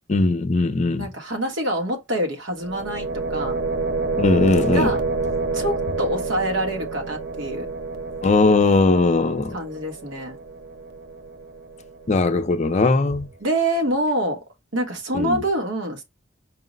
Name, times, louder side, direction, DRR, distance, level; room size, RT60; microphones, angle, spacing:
voice 1, 0.1-1.1 4.2-4.9 8.2-9.6 12.1-13.3 15.1-15.4, left 3 dB, 35° left, 0.5 m, -19 dB
voice 2, 1.0-3.6 4.7-5.0 5.5-7.7 9.5-10.4 13.4-14.4 14.7-16.0, right 1 dB, 75° right, 1.2 m, -26 dB
sound 1, 2.6-12.4, right 3 dB, 60° right, 0.5 m, -28 dB
4.7 x 2.0 x 3.7 m
head